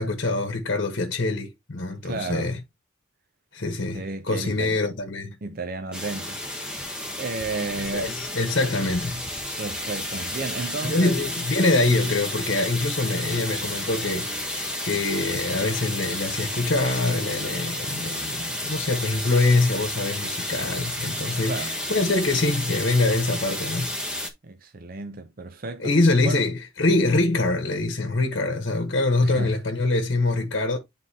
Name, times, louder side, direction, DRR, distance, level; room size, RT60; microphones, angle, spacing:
voice 1, 0.0-2.6 3.5-5.4 7.9-9.3 10.8-23.9 25.8-30.8, left 2 dB, 55° left, 1.1 m, -24 dB
voice 2, 2.0-2.5 3.9-4.8 5.4-6.4 7.1-8.2 9.6-11.2 21.4-21.8 24.4-25.9 26.2-26.5 29.2-29.6, right 3 dB, 45° right, 0.6 m, -32 dB
sound 1, 5.9-24.3, left 1 dB, 5° right, 0.9 m, -31 dB
9.5 x 3.8 x 2.8 m
head